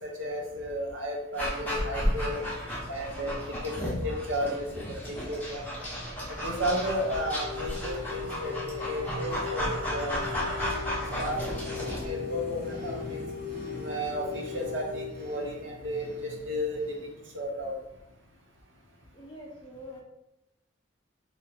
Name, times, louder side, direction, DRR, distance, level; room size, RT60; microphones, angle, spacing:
voice 1, 0.0-2.4 2.8-5.7 6.3-10.1 10.7-10.9 11.2-13.2 13.7-17.0 17.3-17.7, equal, 75° right, 0 dB, 0.9 m, -33 dB
Dog, 1.4-12.1, equal, 10° left, 1.1 m, -33 dB
sound 1, 6.9-15.1, left 6 dB, 55° left, 0.8 m, -39 dB
sound 2, 11.1-17.5, equal, 45° right, 0.6 m, -43 dB
voice 2, 19.1-20.0, equal, 25° left, -1 dB, 0.6 m, -44 dB
3.1 x 2.8 x 4.1 m, 0.90 s
head